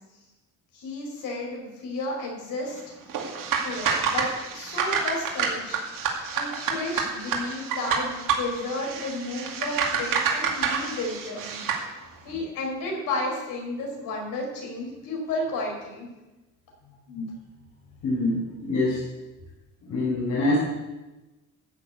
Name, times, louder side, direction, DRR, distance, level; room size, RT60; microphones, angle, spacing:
voice 1, 0.7-2.8 3.6-5.8 6.3-11.8 12.2-16.1 16.8-17.0, left 2 dB, 85° left, 0 dB, 5.0 m, -32 dB
sound 1, 3.1-11.8, right 6 dB, 85° right, 2.4 m, -28 dB
voice 2, 18.0-19.0 19.9-20.6, left 2 dB, 65° left, -6 dB, 5.1 m, -25 dB
14.0 x 7.0 x 8.4 m, 1.1 s
cardioid pair, 150°, 32 cm